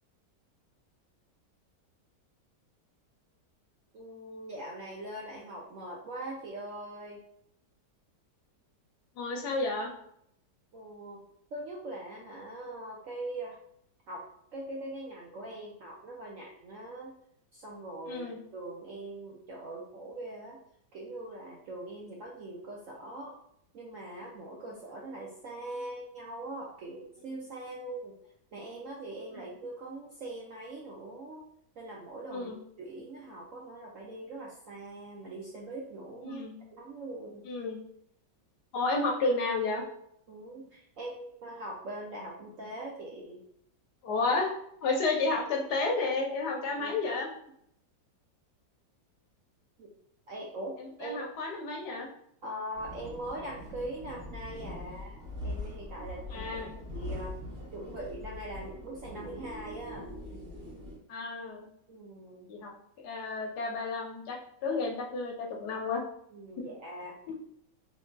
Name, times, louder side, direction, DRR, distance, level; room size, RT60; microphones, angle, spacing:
voice 1, 3.9-7.2 10.7-11.2 11.5-13.6 14.1-14.2 14.5-17.1 17.5-18.3 18.5-20.6 20.9-23.4 23.7-28.1 28.5-31.4 31.8-32.5 32.8-36.4 36.7-37.5 40.3-43.4 46.6-47.0 49.8-49.9 50.3-51.4 52.4-57.4 57.7-60.1 61.9-62.5 66.3-67.2, right 1 dB, 70° right, -2 dB, 0.8 m, -42 dB
voice 2, 9.2-9.9 18.1-18.4 29.3-29.4 32.3-32.6 36.2-36.6 37.4-37.8 38.7-39.8 44.0-44.5 44.8-47.3 50.8-52.1 56.3-56.7 61.1-61.7 62.5-62.7 63.0-66.0 66.6-66.7 67.3-67.4, left 3 dB, 70° left, 0 dB, 1.2 m, -31 dB
sound 1, 52.7-61.0, left 1 dB, 45° right, 1.8 m, -42 dB
3.8 x 3.7 x 2.2 m, 0.72 s
omnidirectional pair, 1.9 m